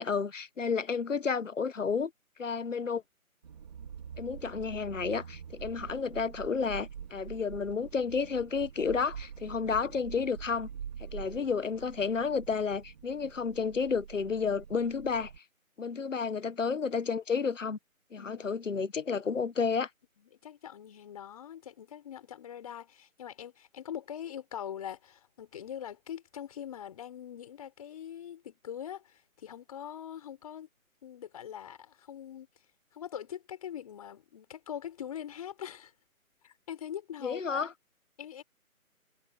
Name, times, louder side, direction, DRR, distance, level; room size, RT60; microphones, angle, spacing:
voice 1, 0.0-2.1 2.4-3.0 4.2-10.7 11.0-15.3 15.8-17.8 18.1-19.9 37.2-37.7, left 5 dB, 60° left, 1.4 m, -31 dB
sound 1, 3.4-15.4, right 8 dB, 30° right, 3.7 m, -45 dB
voice 2, 18.2-18.5 20.2-30.7 31.0-32.5 32.9-35.9 36.4-37.7 38.2-38.4, left 9 dB, 25° left, 5.4 m, -43 dB
figure-of-eight pair, 165°, 43 cm